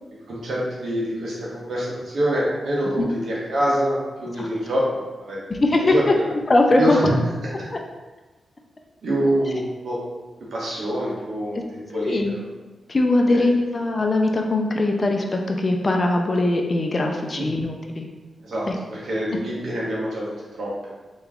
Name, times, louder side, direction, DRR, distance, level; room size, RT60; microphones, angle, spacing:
voice 1, 0.3-5.4 5.8-6.2 6.8-7.1 9.0-10.0 10.5-12.4 13.3-13.4 17.4-17.5 18.4-20.9, equal, 75° right, -5 dB, 1.2 m, -26 dB
voice 2, 5.5-7.2 7.7-7.8 11.9-12.3 12.9-18.1 18.7-18.8, left 2 dB, 40° left, 2 dB, 0.5 m, -21 dB
3.4 x 3.1 x 3.6 m, 1.2 s
cardioid pair, 60°, 0 cm